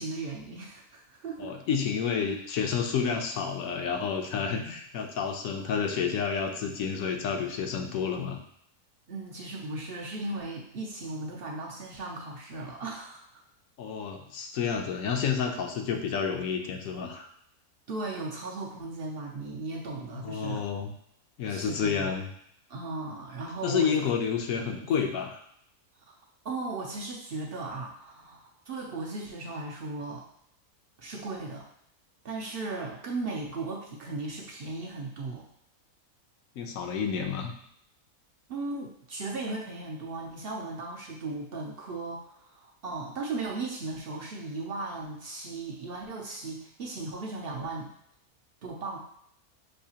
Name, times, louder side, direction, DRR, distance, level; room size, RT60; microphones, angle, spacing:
voice 1, 0.0-1.5 9.1-13.3 17.9-20.6 21.5-22.2 22.7-24.0 24.7-25.0 26.0-26.2 26.4-30.2 31.0-31.7 32.2-35.5 38.5-47.9 48.6-49.0, right 3 dB, 60° right, -1 dB, 0.6 m, -37 dB
voice 2, 1.4-8.4 13.8-17.3 20.2-20.9 21.4-22.3 23.6-25.4 36.6-37.5, left 6 dB, 75° left, 4 dB, 1.0 m, -30 dB
6.4 x 2.7 x 2.8 m, 0.71 s
omnidirectional pair, 1.6 m